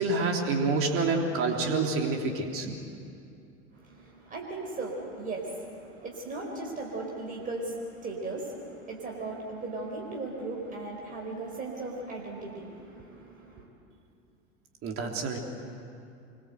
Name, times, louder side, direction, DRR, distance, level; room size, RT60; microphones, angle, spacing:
voice 1, 0.0-2.7 14.8-15.4, right 3 dB, 40° right, 2 dB, 3.3 m, -27 dB
voice 2, 3.7-13.7, right 2 dB, 25° right, -1 dB, 4.6 m, -37 dB
25.5 x 23.5 x 8.0 m, 2.5 s
figure-of-eight pair, 80°, 35 cm